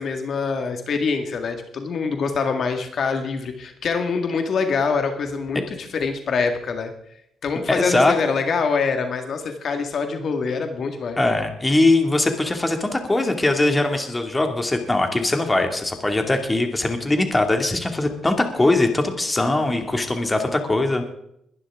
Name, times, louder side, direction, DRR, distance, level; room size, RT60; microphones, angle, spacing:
voice 1, 0.0-6.9 7.4-11.2, left 5 dB, 55° left, 5 dB, 1.9 m, -25 dB
voice 2, 7.7-8.1 11.2-21.1, left 2 dB, 15° left, 5 dB, 2.3 m, -21 dB
21.5 x 11.0 x 3.7 m, 0.74 s
cardioid pair, 90°, 0 cm